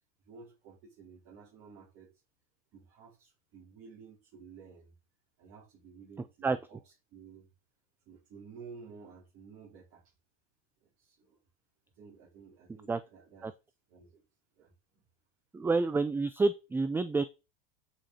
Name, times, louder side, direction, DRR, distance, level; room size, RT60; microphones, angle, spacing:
voice 1, 0.2-2.1 2.7-4.9 5.4-7.5 8.1-10.0 10.8-11.4 12.0-13.5 13.9-14.2 14.6-14.7, right 5 dB, 50° right, 4.1 m, -53 dB
voice 2, 15.5-17.2, right 3 dB, 5° right, 0.4 m, -28 dB
8.7 x 4.8 x 4.3 m
hypercardioid pair, 110°, 29 cm